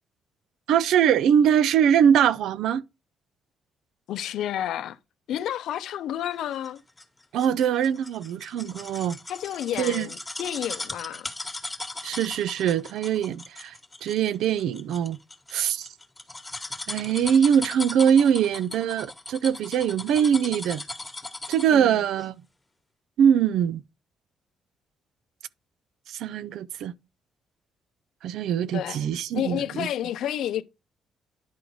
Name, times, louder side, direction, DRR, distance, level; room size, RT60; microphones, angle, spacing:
voice 1, 0.7-2.8 7.3-9.2 9.8-10.1 12.0-15.2 15.5-15.9 16.9-20.8 21.5-22.4 23.2-23.8 26.1-26.9 28.2-29.9, right 8 dB, 80° right, 0.4 m, -22 dB
voice 2, 4.1-5.0 5.3-6.8 9.3-11.3 21.7-22.0 28.7-30.6, left 11 dB, 80° left, 0.5 m, -30 dB
sound 1, 6.6-21.8 22.2-22.3, left 2 dB, 10° left, 1.3 m, -38 dB
10.5 x 3.9 x 4.6 m
cardioid pair, 90°, 0 cm